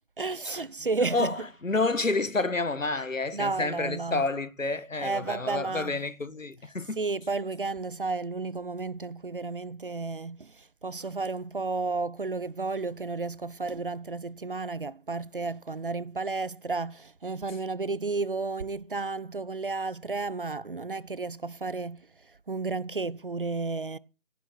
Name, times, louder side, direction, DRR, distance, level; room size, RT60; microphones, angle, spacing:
voice 1, 0.2-1.3 3.3-4.3 5.0-5.9 7.0-10.5 10.8-22.0 22.5-24.0, right 3 dB, 45° right, 0.6 m, -32 dB
voice 2, 1.1-7.0, left 3 dB, 80° left, 1.6 m, -29 dB
17.0 x 10.0 x 4.4 m
figure-of-eight pair, 155°, 38 cm